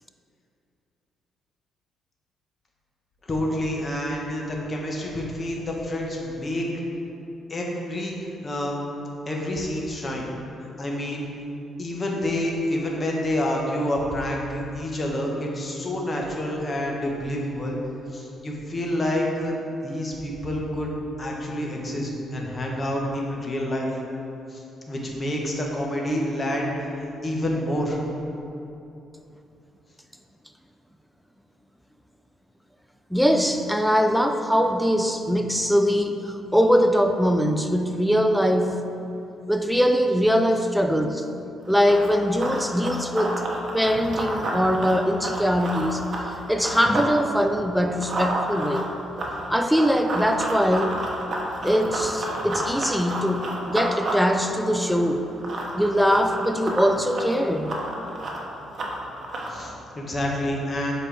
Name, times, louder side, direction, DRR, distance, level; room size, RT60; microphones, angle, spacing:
voice 1, 3.3-6.7 7.5-8.2 8.4-8.8 9.3-10.3 10.8-11.2 11.8-17.8 18.1-19.6 19.8-20.9 21.2-23.9 24.5-26.7 27.2-28.0 59.5-60.9, left 1 dB, 30° left, -1 dB, 1.1 m, -28 dB
voice 2, 33.1-38.9 39.5-41.2 41.7-43.5 43.7-46.0 46.5-48.9 49.5-51.0 51.6-55.2 55.8-57.8, equal, ahead, 6 dB, 0.4 m, -22 dB
Run, 41.6-47.1 47.5-59.7, right 1 dB, 45° right, 1.0 m, -31 dB
7.3 x 4.3 x 3.4 m, 2.8 s
cardioid pair, 90°, 0 cm